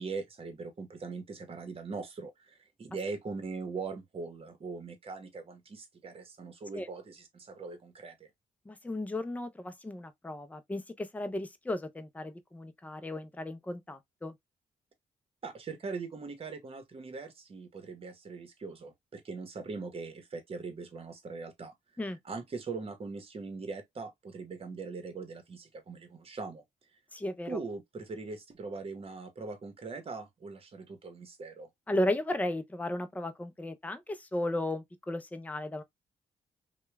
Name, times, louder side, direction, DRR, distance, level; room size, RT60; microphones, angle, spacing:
voice 1, 0.0-8.3 15.4-21.7 22.2-26.6 27.4-31.7, right 4 dB, 45° right, 1.0 m, -41 dB
voice 2, 8.7-14.3 22.0-22.2 27.1-27.6 31.9-35.8, left 1 dB, 10° left, 0.5 m, -35 dB
2.8 x 2.2 x 2.2 m
cardioid pair, 70°, 14 cm